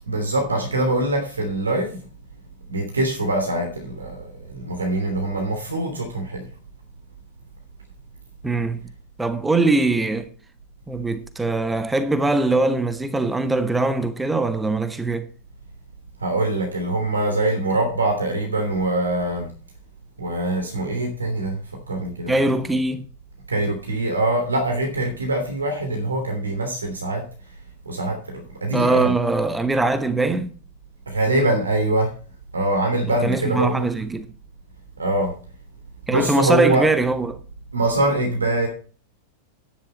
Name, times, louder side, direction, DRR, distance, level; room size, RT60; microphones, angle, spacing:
voice 1, 0.1-2.0 2.7-6.4 16.2-19.5 20.2-21.6 21.9-22.4 23.5-27.2 27.8-29.1 31.1-32.1 32.5-33.9 35.0-35.3 36.1-36.8 37.7-38.7, right 2 dB, 75° right, 3.0 m, -23 dB
voice 2, 8.4-8.8 9.2-10.3 10.9-15.3 22.3-23.0 28.7-30.5 33.2-34.3 36.1-37.4, right 2 dB, 10° right, 1.0 m, -21 dB
10.5 x 10.5 x 4.2 m
figure-of-eight pair, 90°, 0 cm